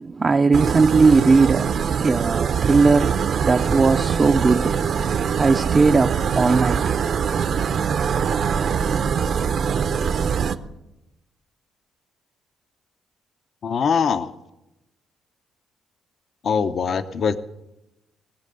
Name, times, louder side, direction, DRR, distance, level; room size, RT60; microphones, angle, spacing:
voice 1, 0.0-4.8 5.4-6.8, right 4 dB, 30° right, 0.5 m, -18 dB
sound 1, 0.5-10.6, right 7 dB, 60° right, 0.8 m, -23 dB
voice 2, 13.6-14.3 16.4-17.4, left 6 dB, 55° left, 0.8 m, -22 dB
20.0 x 7.6 x 6.8 m
cardioid pair, 95°, 0 cm